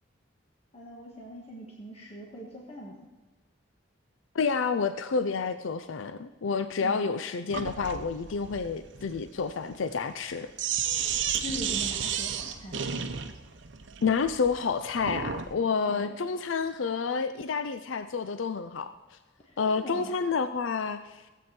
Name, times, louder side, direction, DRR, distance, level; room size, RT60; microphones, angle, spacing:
voice 1, 0.7-3.1 6.8-7.1 11.4-12.9 15.9-16.2 19.4-20.2, equal, 30° left, -2 dB, 1.5 m, -41 dB
voice 2, 4.3-10.5 14.0-18.9 19.6-21.2, left 5 dB, 80° left, 11 dB, 0.5 m, -29 dB
Sink (filling or washing), 7.5-15.5, right 7 dB, 70° right, 0.8 m, -33 dB
16.0 x 8.4 x 4.3 m, 1.2 s
head